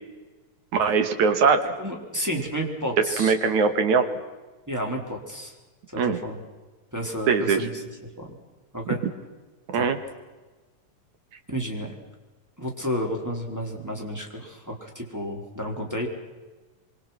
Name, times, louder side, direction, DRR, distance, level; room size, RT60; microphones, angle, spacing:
voice 1, 0.8-1.6 3.2-4.1 6.0-6.2 7.3-7.6 9.7-10.0, right 5 dB, 65° right, 8 dB, 3.2 m, -21 dB
voice 2, 1.8-3.3 4.7-5.5 5.9-6.4 6.9-7.7 8.2-8.3 8.7-9.0 9.7-9.9 11.5-11.9 12.6-16.1, equal, 5° right, 0 dB, 4.3 m, -31 dB
27.0 x 26.0 x 6.1 m, 1.2 s
omnidirectional pair, 3.8 m